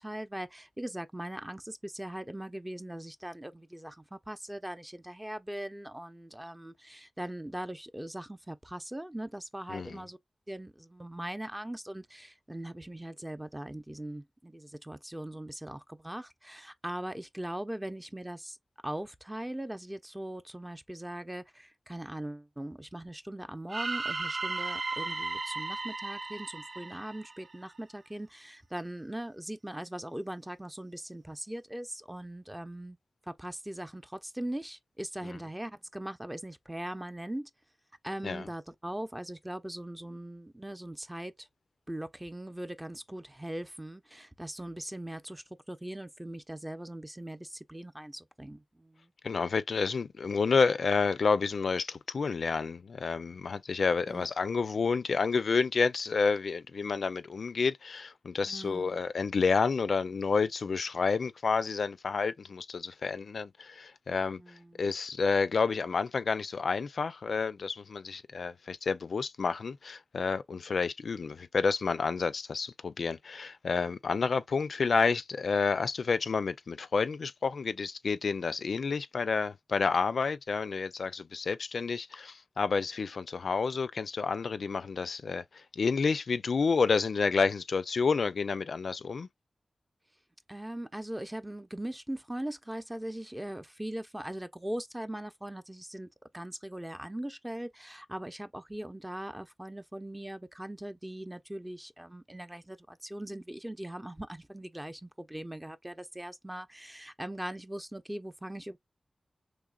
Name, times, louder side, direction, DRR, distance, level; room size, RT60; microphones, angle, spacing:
voice 1, 0.0-10.2 10.5-18.6 18.8-33.0 33.3-37.5 38.0-41.5 41.9-49.1 54.1-54.3 58.5-59.1 64.4-64.9 90.5-96.1 96.3-108.8, right 1 dB, 15° right, 0.6 m, -40 dB
voice 2, 9.7-10.0 35.2-35.4 38.2-38.5 49.2-64.4 64.8-89.3, left 5 dB, 80° left, 0.4 m, -29 dB
sound 1, 23.7-27.8, right 3 dB, 65° right, 0.5 m, -35 dB
3.7 x 3.1 x 2.3 m
cardioid pair, 50°, 0 cm